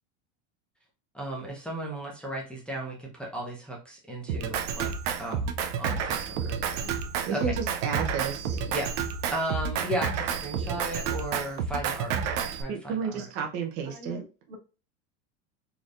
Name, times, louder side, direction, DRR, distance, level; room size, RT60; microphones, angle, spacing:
voice 1, 1.1-4.9 5.2-6.6 6.9-7.0 7.3-7.4 8.7-8.9 9.3-13.2, right 1 dB, 5° left, -3 dB, 0.7 m, -35 dB
Drum kit, 4.3-12.6, right 7 dB, 70° right, 0.8 m, -30 dB
voice 2, 7.2-8.6 12.7-14.2, right 6 dB, 35° right, 1 dB, 0.7 m, -32 dB
voice 3, 13.9-14.6, left 2 dB, 90° right, -1 dB, 2.0 m, -44 dB
4.2 x 3.4 x 2.4 m, 0.33 s
supercardioid pair, 155°, 37 cm